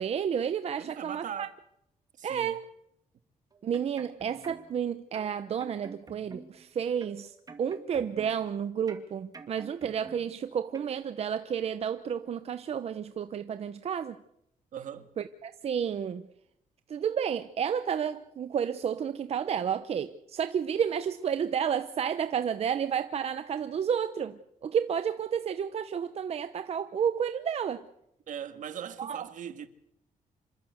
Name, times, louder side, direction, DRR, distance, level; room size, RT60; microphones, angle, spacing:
voice 1, 0.0-1.5 2.2-2.7 3.6-14.2 15.2-16.2 16.9-27.9 29.0-29.3, right 8 dB, 50° right, 0.8 m, -31 dB
voice 2, 0.8-1.5 2.2-2.6 14.7-15.1 28.3-29.7, right 9 dB, 70° right, 1.7 m, -40 dB
sound 1, 3.5-4.8 5.1-6.7 7.0-8.5 8.9-10.4 10.7-10.9, right 4 dB, 25° right, 2.1 m, -48 dB
27.0 x 13.5 x 8.0 m
cardioid pair, 145°, 14 cm